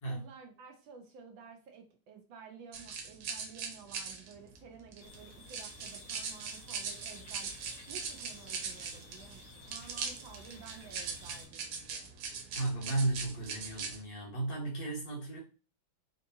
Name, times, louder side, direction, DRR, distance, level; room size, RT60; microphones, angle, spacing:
voice 1, 0.0-12.1, right 6 dB, 70° right, 1.3 m, -53 dB
sound 1, 2.7-14.0, right 5 dB, 90° right, 1.6 m, -41 dB
sound 2, 5.0-11.5, left 3 dB, 80° left, 1.9 m, -54 dB
voice 2, 12.5-15.4, right 2 dB, 60° left, 2.1 m, -34 dB
4.4 x 2.7 x 2.7 m
omnidirectional pair, 2.3 m